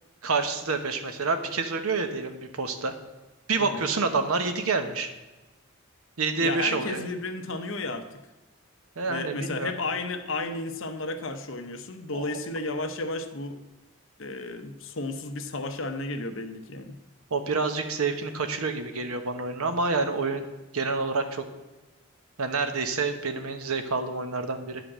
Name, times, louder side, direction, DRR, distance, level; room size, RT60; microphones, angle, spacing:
voice 1, 0.2-2.9 3.5-5.1 6.2-7.0 9.0-9.7 12.1-12.3 17.3-20.5 20.7-21.5 22.4-24.8, right 4 dB, 85° right, 7 dB, 1.0 m, -28 dB
voice 2, 6.4-8.2 9.1-13.6 14.2-17.0, left 2 dB, 65° left, 8 dB, 0.9 m, -33 dB
9.8 x 5.1 x 7.4 m, 1.1 s
head